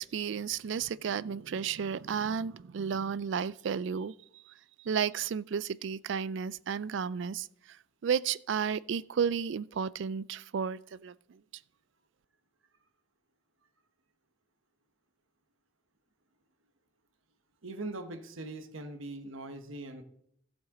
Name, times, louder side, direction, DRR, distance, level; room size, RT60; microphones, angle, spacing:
voice 1, 0.0-7.8 8.0-11.4, right 7 dB, 65° right, 0.3 m, -33 dB
voice 2, 17.6-20.0, right 2 dB, 85° right, 1.2 m, -41 dB
15.0 x 7.2 x 3.8 m
head